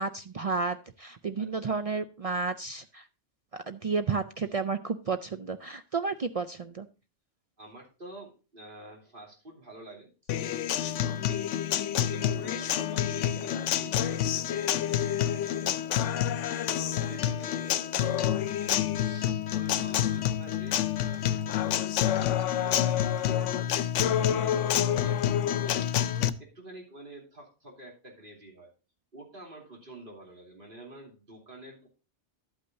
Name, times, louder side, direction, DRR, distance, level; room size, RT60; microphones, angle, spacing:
voice 1, 0.0-3.1 3.5-6.9, right 4 dB, 65° right, 10 dB, 0.3 m, -32 dB
voice 2, 1.4-1.8 7.6-28.7 29.1-31.9, right 2 dB, 45° right, -1 dB, 3.2 m, -48 dB
Acoustic guitar, 10.3-26.3, left 10 dB, 85° left, 0.9 m, -28 dB
12.0 x 8.5 x 2.6 m, 0.32 s
omnidirectional pair, 1.2 m